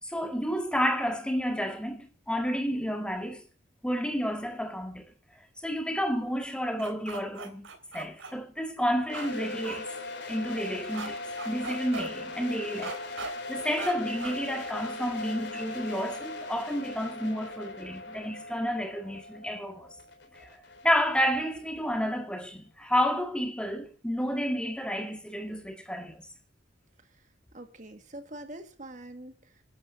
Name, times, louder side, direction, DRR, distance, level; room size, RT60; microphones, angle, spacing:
voice 1, 0.0-3.4 3.8-5.1 5.6-9.9 10.3-13.0 13.2-20.0 20.3-20.5 20.8-26.2, equal, 5° left, 1.8 m, -30 dB
sound 1, 6.8-8.3 9.1-9.3 9.6-9.8 10.9-11.1 11.4-12.1 12.8-13.3 13.8-13.9 14.2-14.4, right 4 dB, 80° right, 3.5 m, -38 dB
sound 2, 9.1-22.0, left 2 dB, 60° left, 4.0 m, -39 dB
voice 2, 27.5-29.6, right 1 dB, 40° right, 1.8 m, -45 dB
27.5 x 12.0 x 2.7 m
head